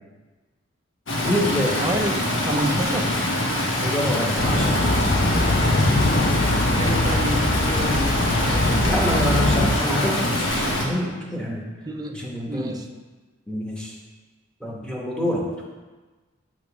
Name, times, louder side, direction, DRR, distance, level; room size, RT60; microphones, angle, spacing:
Stream, 1.1-10.9, left 1 dB, 65° left, 1.2 m, -24 dB
voice 1, 1.1-1.8 3.8-5.0 8.8-11.6 12.1-12.7 13.5-13.9 14.6-15.5, left 1 dB, 5° left, -3 dB, 1.0 m, -26 dB
voice 2, 1.8-3.2 5.2-5.6 6.8-8.9 11.9-12.9, right 1 dB, 20° right, 3 dB, 0.4 m, -29 dB
sound 1, 4.4-9.8, left 2 dB, 45° left, 0.5 m, -22 dB
6.6 x 3.1 x 5.9 m, 1.3 s
head